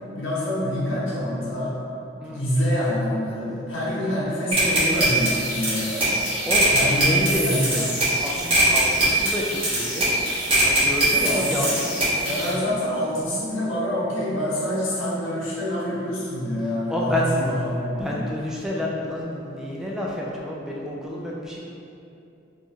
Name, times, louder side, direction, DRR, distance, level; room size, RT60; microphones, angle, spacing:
voice 1, 0.1-1.8 2.2-6.2 6.7-7.8 11.1-11.8 12.2-18.2, equal, 80° left, -8 dB, 0.8 m, -26 dB
sound 1, 4.5-12.5, right 1 dB, 30° right, 1.1 m, -22 dB
voice 2, 6.5-7.5 7.7-7.9 8.2-10.1 10.6-12.0 12.4-12.5 16.9-17.3 18.0-21.6, left 1 dB, 5° right, -4 dB, 0.3 m, -29 dB
2.9 x 2.3 x 4.1 m, 2.7 s
head